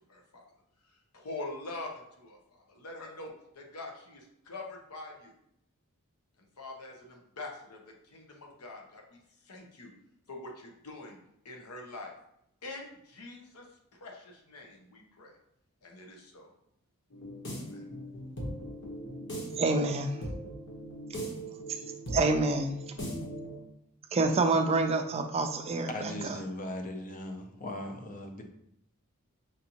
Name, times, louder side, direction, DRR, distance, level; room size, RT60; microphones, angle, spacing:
voice 1, 0.1-0.4 1.1-5.3 6.6-9.2 9.5-9.9 10.3-11.2 11.4-12.1 12.6-13.7 14.0-15.3 15.8-16.5 17.7-17.8, left 2 dB, 85° left, 1 dB, 0.8 m, -44 dB
sound 1, 17.1-23.6, right 1 dB, 55° left, 1.1 m, -39 dB
voice 2, 19.6-20.1 22.1-22.8 24.1-25.9, right 3 dB, 25° right, 5 dB, 0.3 m, -27 dB
voice 3, 25.9-28.4, left 1 dB, 35° left, 5 dB, 0.5 m, -38 dB
5.1 x 2.6 x 2.9 m, 0.78 s
head